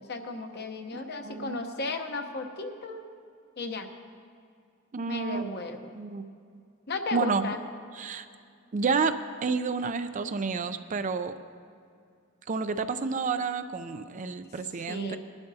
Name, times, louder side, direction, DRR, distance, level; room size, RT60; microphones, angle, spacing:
voice 1, 0.0-3.0 3.6-3.9 5.1-5.9 6.9-7.6 14.9-15.2, left 3 dB, 50° left, 5 dB, 0.9 m, -34 dB
voice 2, 0.9-1.6 4.9-5.4 5.9-6.3 7.1-7.5 8.0-8.3 8.7-11.3 12.5-15.2, right 4 dB, 35° right, 10 dB, 0.4 m, -30 dB
20.0 x 11.5 x 2.8 m, 2.4 s
head